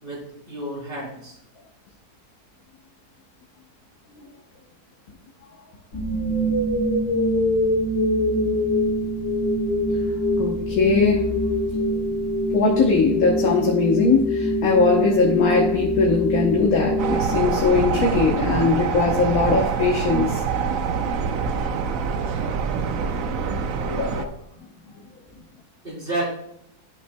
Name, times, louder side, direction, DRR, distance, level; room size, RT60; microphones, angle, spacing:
voice 1, 0.0-1.3 25.8-26.3, right 1 dB, 35° right, 3.0 m, -30 dB
sound 1, 5.9-18.0, left 1 dB, 90° left, 2.3 m, -24 dB
voice 2, 10.4-11.4 12.5-20.4 23.9-24.3, left 4 dB, 65° left, 1.3 m, -20 dB
sound 2, 17.0-24.3, right 6 dB, 65° right, 1.0 m, -25 dB
12.0 x 5.5 x 2.2 m
omnidirectional pair, 1.7 m